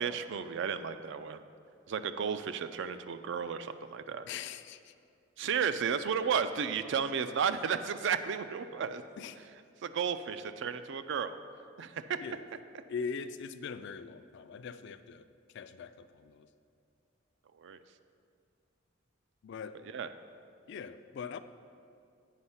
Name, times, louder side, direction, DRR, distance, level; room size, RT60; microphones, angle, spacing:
voice 1, 0.0-1.4 1.9-4.3 5.4-9.0 9.8-11.4 11.8-12.2 17.6-17.8 19.8-20.1, right 7 dB, 60° right, 11 dB, 0.4 m, -33 dB
voice 2, 4.3-4.9 9.2-9.4 12.2-12.4 12.9-15.2 15.5-16.5 19.4-19.8 20.7-21.4, left 6 dB, 60° left, 11 dB, 0.3 m, -41 dB
8.2 x 5.3 x 5.6 m, 2.4 s
head